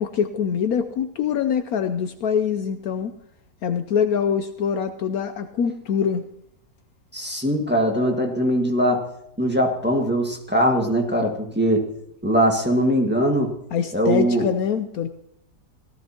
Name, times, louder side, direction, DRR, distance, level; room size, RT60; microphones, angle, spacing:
voice 1, 0.0-3.1 3.6-6.2 13.7-15.1, left 7 dB, 70° left, 9 dB, 1.0 m, -24 dB
voice 2, 7.1-9.0 9.4-11.9 12.2-13.5 13.9-14.5, equal, 5° right, 1 dB, 1.6 m, -21 dB
17.5 x 13.0 x 2.9 m, 0.76 s
omnidirectional pair, 1.8 m